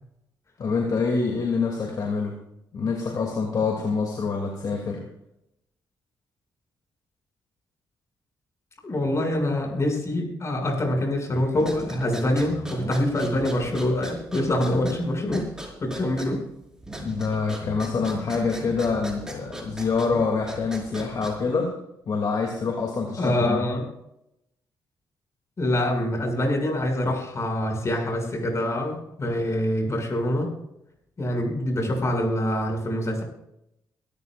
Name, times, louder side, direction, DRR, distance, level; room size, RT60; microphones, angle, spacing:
voice 1, 0.6-2.5 2.7-5.0 17.0-21.7 22.0-23.7, left 4 dB, 55° left, 1 dB, 2.8 m, -26 dB
voice 2, 8.8-15.5 15.8-16.4 23.2-23.8 25.6-30.5 31.2-33.2, left 1 dB, 40° left, 2 dB, 6.9 m, -25 dB
sound 1, 11.5-21.6, right 1 dB, 10° right, 5.3 m, -38 dB
23.0 x 13.5 x 2.6 m, 0.82 s
cardioid pair, 80°, 8 cm